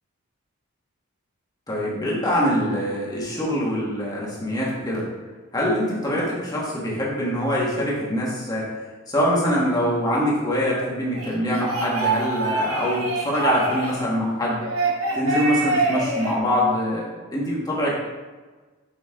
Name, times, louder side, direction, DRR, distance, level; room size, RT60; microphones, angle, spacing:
voice 1, 1.7-5.1 5.5-8.7 9.1-14.6 15.1-18.0, equal, 20° left, -5 dB, 1.7 m, -24 dB
sound 1, 11.2-14.1 14.6-16.4, right 3 dB, 75° right, 1.3 m, -25 dB
6.8 x 5.7 x 3.7 m, 1.3 s
head